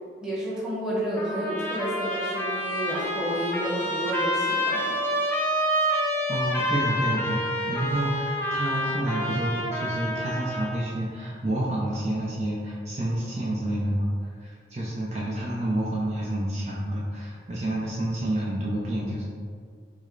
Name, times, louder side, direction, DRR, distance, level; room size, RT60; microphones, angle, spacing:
voice 1, 0.2-5.0, equal, 5° right, -8 dB, 1.0 m, -30 dB
Trumpet, 1.2-10.8, equal, 10° left, 0.5 m, -28 dB
voice 2, 6.3-14.1 14.4-19.2, right 1 dB, 40° right, -6 dB, 0.6 m, -29 dB
6.1 x 2.2 x 3.9 m, 2.1 s
head